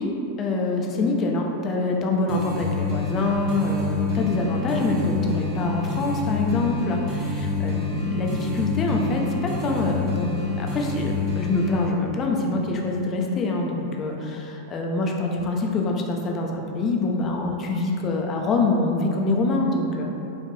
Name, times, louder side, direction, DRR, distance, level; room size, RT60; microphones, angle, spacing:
voice 1, 0.0-20.1, left 2 dB, 30° left, 0 dB, 0.5 m, -25 dB
sound 1, 2.3-11.9, left 3 dB, 35° right, 0.9 m, -27 dB
4.7 x 2.6 x 3.1 m, 2.8 s
figure-of-eight pair, 90°, 0 cm